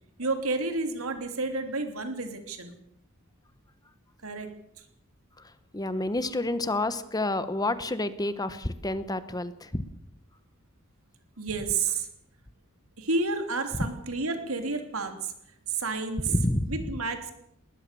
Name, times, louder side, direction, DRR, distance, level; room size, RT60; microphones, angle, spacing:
voice 1, 0.2-2.8 4.2-4.5 11.4-12.1 13.0-15.3 15.7-16.3 16.7-17.3, right 3 dB, 80° right, 6 dB, 3.3 m, -30 dB
voice 2, 5.7-9.8 13.8-13.9 16.3-16.8, left 1 dB, 20° left, 13 dB, 1.1 m, -29 dB
20.0 x 20.0 x 7.0 m, 0.76 s
head